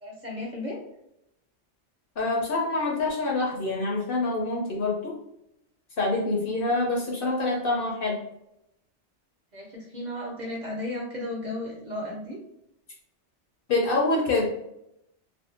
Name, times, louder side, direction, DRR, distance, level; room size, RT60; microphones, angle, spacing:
voice 1, 0.0-0.8 9.5-12.4, left 1 dB, 45° right, -3 dB, 0.7 m, -34 dB
voice 2, 2.2-5.2 6.0-8.2 13.7-14.5, left 2 dB, 55° left, -2 dB, 0.7 m, -26 dB
2.6 x 2.2 x 2.5 m, 0.81 s
omnidirectional pair, 1.2 m